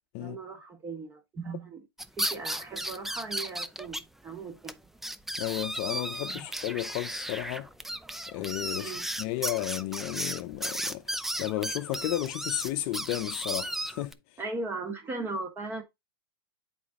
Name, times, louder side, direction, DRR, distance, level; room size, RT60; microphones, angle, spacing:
voice 1, 0.2-1.8 2.2-4.8 6.3-6.5 8.8-9.1 14.4-15.8, right 3 dB, 20° right, 1.8 m, -38 dB
sound 1, 2.0-4.0 4.3-4.4 4.7-4.8 5.0-14.1, right 1 dB, ahead, 0.4 m, -35 dB
voice 2, 5.4-7.7 8.3-8.9 9.2-14.2, left 16 dB, 45° left, 0.7 m, -33 dB
8.3 x 4.4 x 3.7 m
supercardioid pair, 140°, 13 cm